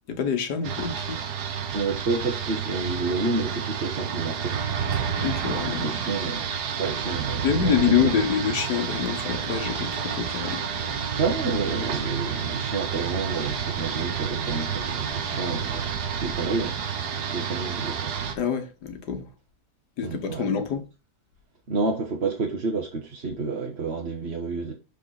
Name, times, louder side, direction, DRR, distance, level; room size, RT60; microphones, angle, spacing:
voice 1, 0.1-1.2 5.2-5.9 7.4-10.6 18.4-19.3 20.0-20.8, left 7 dB, 90° left, 1.8 m, -26 dB
sound 1, 0.6-18.4, right 7 dB, 85° right, 1.6 m, -30 dB
voice 2, 1.7-4.6 5.8-6.5 6.8-8.0 11.2-16.8 17.1-18.1 20.0-20.5 21.7-24.7, right 3 dB, 45° right, 1.4 m, -29 dB
6.5 x 5.5 x 4.1 m
omnidirectional pair, 1.7 m